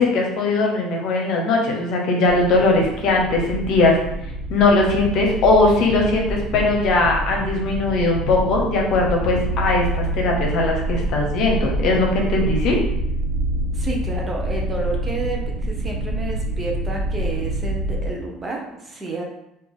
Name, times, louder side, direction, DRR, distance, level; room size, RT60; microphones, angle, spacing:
voice 1, 0.0-4.0 4.5-12.8, left 2 dB, 60° left, 0 dB, 0.9 m, -19 dB
sound 1, 2.3-18.1, right 1 dB, 65° right, 0.8 m, -26 dB
voice 2, 13.7-19.2, right 2 dB, 25° right, 0 dB, 1.0 m, -30 dB
3.4 x 2.9 x 3.6 m, 0.84 s
hypercardioid pair, 70°, 0 cm